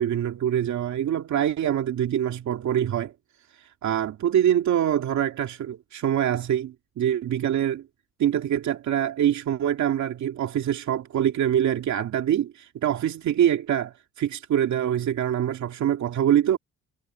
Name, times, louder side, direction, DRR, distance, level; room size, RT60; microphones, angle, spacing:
voice 1, 0.0-3.1 3.8-7.8 8.2-16.6, right 10 dB, 70° right, 2.5 m, -24 dB
cardioid pair, 90°, 30 cm